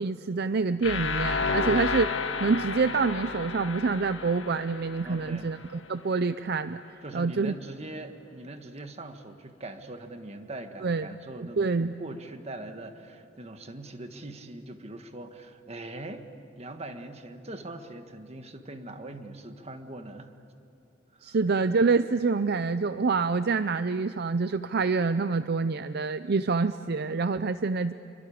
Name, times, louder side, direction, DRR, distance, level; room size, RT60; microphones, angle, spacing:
voice 1, 0.0-2.1 2.4-5.6 5.9-6.8 7.1-7.5 10.8-11.1 11.4-12.0 21.2-27.9, right 4 dB, 55° right, 12 dB, 0.5 m, -26 dB
sound 1, 0.8-5.7, left 4 dB, 90° left, 1.7 m, -31 dB
voice 2, 5.0-5.5 7.0-20.3 21.1-21.4, right 2 dB, 35° right, 7 dB, 1.6 m, -42 dB
27.5 x 24.0 x 8.6 m, 3.0 s
head